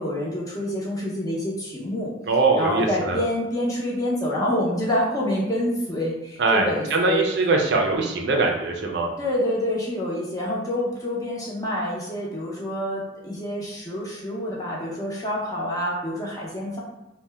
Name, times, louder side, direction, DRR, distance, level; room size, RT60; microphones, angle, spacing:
voice 1, 0.0-2.1 2.6-7.3 9.2-16.8, left 1 dB, 20° left, -5 dB, 0.7 m, -27 dB
voice 2, 2.3-3.2 6.4-9.1, right 3 dB, 60° right, 1 dB, 0.4 m, -22 dB
2.7 x 2.1 x 3.3 m, 1.0 s
head